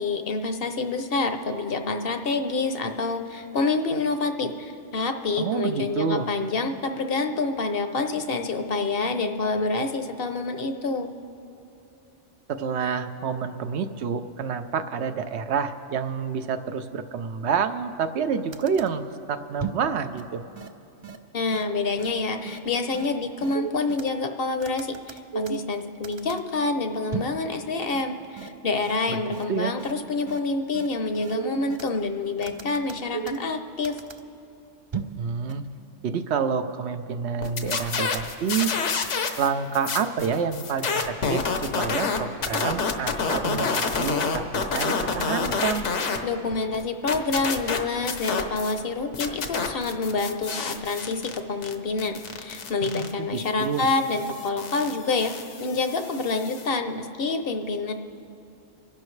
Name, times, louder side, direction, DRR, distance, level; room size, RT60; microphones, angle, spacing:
voice 1, 0.0-11.1 21.3-34.0 46.2-55.3 55.6-57.9, left 3 dB, 55° left, 7 dB, 0.9 m, -27 dB
voice 2, 5.4-6.3 12.5-20.4 29.1-29.2 29.5-29.7 35.2-35.6 36.0-38.7 39.4-45.9 52.8-53.9, right 6 dB, 70° right, 9 dB, 0.9 m, -28 dB
sound 1, 18.5-18.9 19.6-19.9 20.2-20.3 20.6-20.7 21.0-21.2 21.5-21.6 22.0-22.1 22.5-22.6 22.9-23.1 23.4-24.1 24.6-25.8 26.0-26.4 27.1-27.4 27.9-28.0 28.4-28.5 28.8-29.0 29.3-29.4 29.8-29.9 30.3-30.4 30.7-30.9 31.2-31.9 32.4-33.5 33.8-34.2 34.9-35.2 35.5-35.6, right 7 dB, 50° right, 0.3 m, -34 dB
sound 2, 37.4-39.5 39.7-46.2 46.5-48.8 49.1-56.7, left 5 dB, 80° left, 1.2 m, -28 dB
25.0 x 11.5 x 3.2 m, 2.8 s
omnidirectional pair, 1.2 m